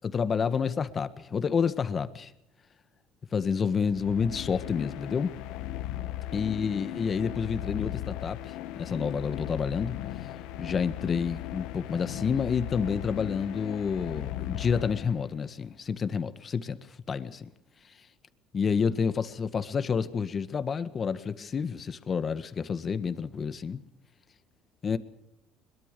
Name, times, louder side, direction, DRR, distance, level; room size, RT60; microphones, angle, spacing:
voice 1, 0.0-2.3 3.3-5.3 6.3-10.3 10.6-16.8 17.1-17.5 18.5-23.8 24.8-25.0, left 6 dB, 35° left, 1.7 m, -29 dB
sound 1, 3.8-15.5, left 13 dB, 80° left, 1.5 m, -37 dB
22.5 x 22.5 x 6.9 m
supercardioid pair, 100°, 0 cm